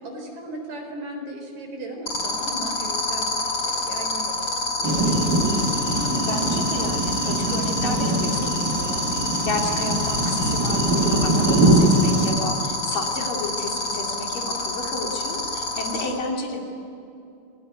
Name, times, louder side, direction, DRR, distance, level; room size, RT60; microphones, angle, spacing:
voice 1, 0.0-5.7, right 1 dB, 35° right, 2 dB, 4.8 m, -37 dB
sound 1, 2.1-16.0, left 2 dB, 25° left, 4.5 m, -27 dB
sound 2, 4.8-12.3, right 2 dB, 80° right, 0.9 m, -22 dB
voice 2, 5.9-9.0 9.4-16.6, left 2 dB, 45° left, 0 dB, 4.3 m, -31 dB
28.5 x 19.5 x 9.6 m, 2.7 s
omnidirectional pair, 5.9 m